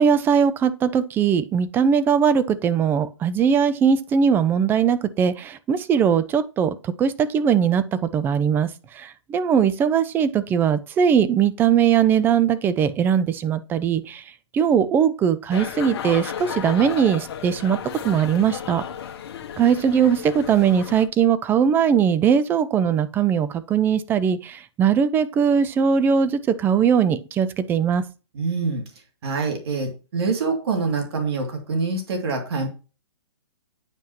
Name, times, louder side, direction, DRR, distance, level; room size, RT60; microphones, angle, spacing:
voice 1, 0.0-14.2 14.5-17.8 18.0-18.8 19.6-28.0, right 7 dB, 15° right, 0.4 m, -20 dB
sound 1, 15.5-21.1, left 8 dB, 55° left, 1.2 m, -34 dB
voice 2, 28.3-28.8 29.2-32.7, right 4 dB, 55° right, 2.5 m, -25 dB
9.0 x 5.5 x 2.9 m
hypercardioid pair, 135°, 15 cm